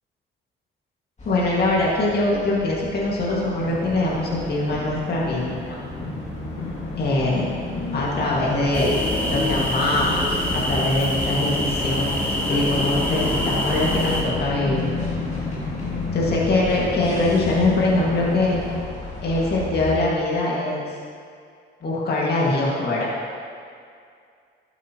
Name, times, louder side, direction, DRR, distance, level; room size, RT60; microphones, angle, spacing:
sound 1, 1.2-20.0, left 2 dB, 35° left, 2.6 m, -37 dB
voice 1, 1.3-5.8 6.9-7.5 7.9-9.0 9.3-10.2 10.5-12.1 12.5-14.9 16.1-18.6 19.2-20.9 21.8-23.1, left 2 dB, 55° left, -5 dB, 2.1 m, -23 dB
sound 2, 3.5-18.8, left 3 dB, 80° left, 2.1 m, -32 dB
sound 3, 8.7-14.2, left 1 dB, 10° left, 2.4 m, -25 dB
12.5 x 8.1 x 3.1 m, 2.3 s
cardioid pair, 90°, 20 cm